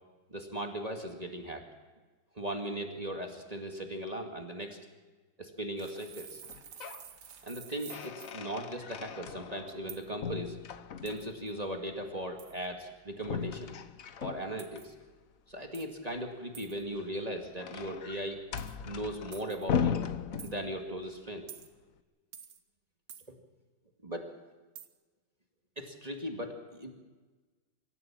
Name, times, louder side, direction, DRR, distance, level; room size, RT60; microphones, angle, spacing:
voice 1, 0.3-1.6 2.4-4.8 5.4-6.4 7.4-10.6 11.0-13.7 14.2-14.9 15.5-18.4 18.9-20.1 20.4-21.5 24.0-24.3 25.8-26.9, right 1 dB, 20° right, 3 dB, 2.1 m, -38 dB
sound 1, 5.8-8.4 9.9-10.1 11.1-11.5 12.4-12.6 14.6-14.9 15.7-16.0 16.5-16.8 18.6-18.8 19.3-19.7 20.4-20.5 21.5-21.7 22.3-22.6 23.1-23.3 24.8-24.9, right 8 dB, 60° right, 1.7 m, -49 dB
sound 2, 6.4-7.1 7.4-9.9 10.2-11.4 13.2-14.8 16.8-21.0, left 7 dB, 50° left, 1.1 m, -37 dB
25.5 x 14.0 x 7.5 m, 1.3 s
omnidirectional pair, 2.2 m